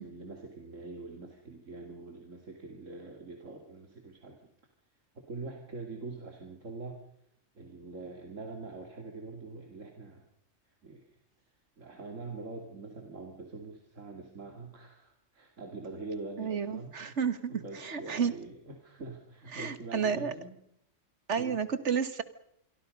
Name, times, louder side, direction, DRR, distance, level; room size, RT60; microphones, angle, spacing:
voice 1, 0.0-4.5 5.1-7.0 7.5-10.2 10.8-11.1 11.8-16.9 17.5-20.6 21.4-21.6, right 3 dB, 80° right, 2 dB, 2.9 m, -44 dB
voice 2, 16.4-18.3 19.5-20.3 21.3-22.2, right 6 dB, 65° right, 12 dB, 1.8 m, -31 dB
26.5 x 23.5 x 5.4 m, 0.75 s
omnidirectional pair, 1.3 m